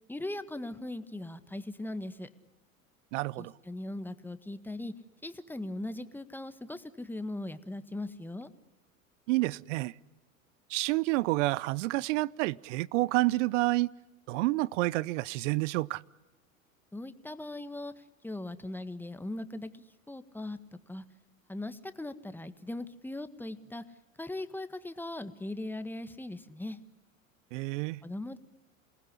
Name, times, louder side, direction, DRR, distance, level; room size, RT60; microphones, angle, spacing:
voice 1, 0.1-2.3 3.4-4.9 5.2-8.5 16.9-20.6 20.9-21.0 21.5-23.8 24.2-26.8 28.0-28.4, left 1 dB, 5° left, 1.6 m, -39 dB
voice 2, 3.1-3.5 9.3-9.9 10.7-13.9 14.3-16.0 27.5-28.0, right 20 dB, 60° right, 0.9 m, -29 dB
28.5 x 19.0 x 9.9 m
hypercardioid pair, 85°, 41 cm